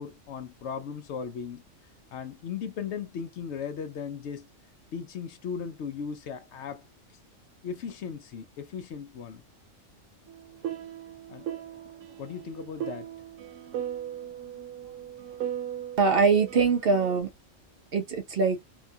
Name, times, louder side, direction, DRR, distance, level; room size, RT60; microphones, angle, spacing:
voice 1, 0.0-1.6 2.1-4.5 4.9-6.9 7.6-9.4 11.3-11.5 12.2-13.1, left 7 dB, 70° left, 0.8 m, -37 dB
sound 1, 10.3-17.2, right 10 dB, 80° right, 1.0 m, -38 dB
voice 2, 16.0-17.3 17.9-18.6, right 5 dB, 60° right, 0.7 m, -23 dB
2.8 x 2.3 x 2.6 m
omnidirectional pair, 1.3 m